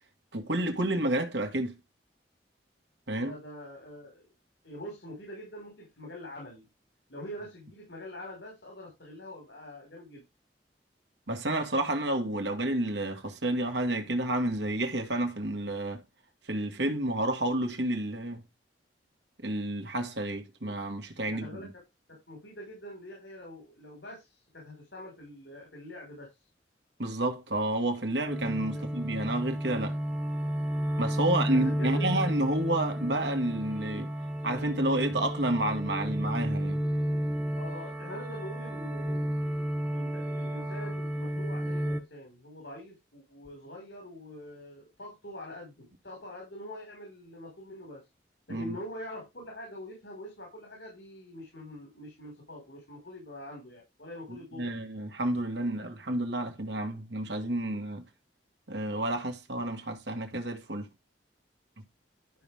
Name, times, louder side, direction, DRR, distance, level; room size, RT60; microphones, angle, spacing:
voice 1, 0.3-1.7 3.1-3.3 11.3-16.0 16.5-18.4 19.4-21.7 27.0-30.0 31.0-34.1 34.4-36.8 48.5-48.8 54.3-58.0 58.7-60.9, right 1 dB, 80° right, 2.1 m, -30 dB
voice 2, 3.2-4.3 4.6-6.7 7.1-10.2 21.2-21.8 22.1-26.3 28.7-28.8 31.2-32.2 37.5-39.3 39.9-48.0 48.5-54.8, left 1 dB, 75° left, 5.3 m, -44 dB
sound 1, 28.2-42.0, equal, 10° right, 1.1 m, -32 dB
12.5 x 6.2 x 3.6 m
head